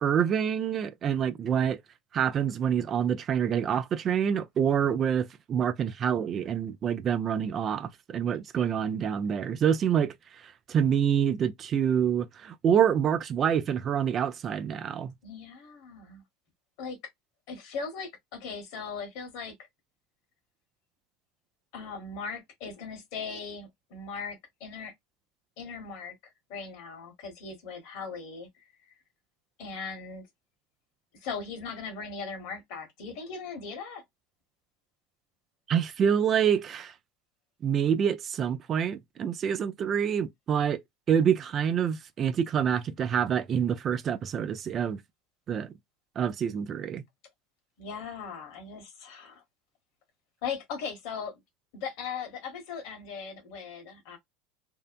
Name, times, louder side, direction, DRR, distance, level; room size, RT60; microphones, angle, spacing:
voice 1, 0.0-1.8 2.1-10.1 10.7-15.1 35.7-36.9 37.6-40.8 41.1-45.0 45.5-45.7 46.2-47.0, right 8 dB, 40° right, 0.4 m, -26 dB
voice 2, 15.2-16.2 16.8-17.0 17.5-19.5 21.7-24.9 25.6-26.1 26.5-28.6 29.6-30.3 31.2-34.0 47.8-49.4 50.4-51.4 51.7-54.2, left 5 dB, 65° left, 1.2 m, -39 dB
2.7 x 2.1 x 2.5 m
hypercardioid pair, 90°, 0 cm